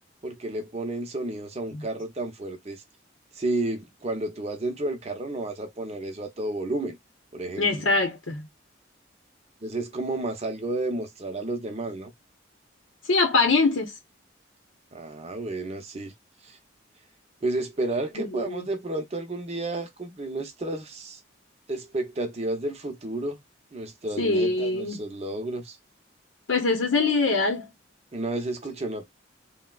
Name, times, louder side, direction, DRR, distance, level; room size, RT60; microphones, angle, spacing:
voice 1, 0.2-2.8 3.3-7.0 7.3-7.8 9.6-12.1 14.9-16.1 16.4-16.6 17.4-21.2 21.7-23.4 23.7-25.8 28.1-29.1, right 2 dB, 30° right, 0.6 m, -31 dB
voice 2, 7.6-8.5 13.1-13.9 18.2-18.6 24.2-25.0 26.5-27.7, left 3 dB, 80° left, 0.7 m, -23 dB
3.4 x 2.1 x 2.2 m
head